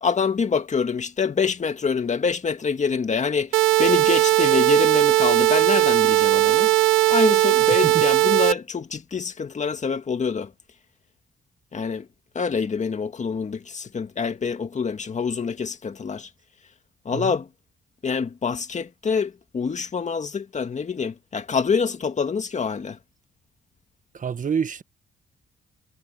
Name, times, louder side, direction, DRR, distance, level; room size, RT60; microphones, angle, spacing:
voice 1, 0.0-6.7 7.1-10.5 11.7-12.1 12.3-16.3 17.1-17.5 18.0-23.0, left 5 dB, 35° left, 2.1 m, -26 dB
sound 1, 3.5-8.5, right 16 dB, 90° right, 1.0 m, -18 dB
voice 2, 24.1-24.8, right 7 dB, 40° right, 1.4 m, -27 dB
cardioid pair, 90°, 20 cm